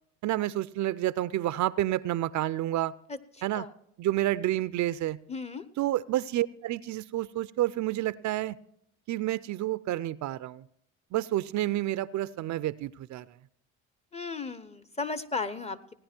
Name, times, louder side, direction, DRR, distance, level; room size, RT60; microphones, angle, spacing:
voice 1, 0.2-2.9 3.4-3.7 4.0-5.2 5.8-8.6 9.1-10.7 11.1-13.3, right 14 dB, 60° right, 18 dB, 0.5 m, -29 dB
voice 2, 5.3-5.6 14.1-15.9, left 4 dB, 20° left, 14 dB, 0.9 m, -35 dB
17.0 x 10.0 x 4.4 m, 0.73 s
supercardioid pair, 70°, 33 cm